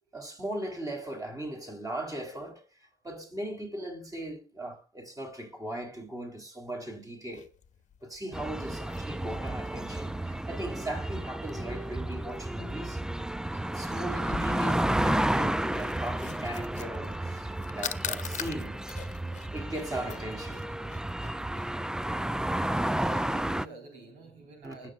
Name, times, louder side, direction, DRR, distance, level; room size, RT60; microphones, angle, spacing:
voice 1, 0.1-2.6 3.0-7.5 8.0-13.0 13.7-18.8 19.5-20.7 24.6-24.9, right 1 dB, 20° right, 3.9 m, -38 dB
sound 1, 7.3-21.7, left 8 dB, 45° left, 1.1 m, -45 dB
sound 2, 8.3-23.7, right 1 dB, 5° right, 0.4 m, -32 dB
voice 2, 22.9-24.9, right 3 dB, 80° right, 4.6 m, -48 dB
20.5 x 7.0 x 2.5 m
supercardioid pair, 70°, 17 cm